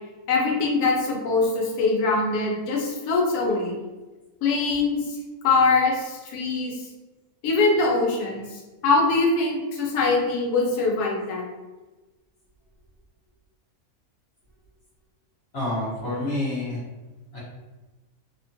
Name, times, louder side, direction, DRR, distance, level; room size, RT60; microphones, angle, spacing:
voice 1, 0.3-3.8 4.4-5.0 5.4-6.8 7.4-11.5, left 3 dB, 90° left, -1 dB, 1.2 m, -23 dB
voice 2, 15.5-16.8 17.3-17.4, left 1 dB, 50° left, -9 dB, 1.0 m, -28 dB
2.9 x 2.2 x 2.6 m, 1.2 s
omnidirectional pair, 1.6 m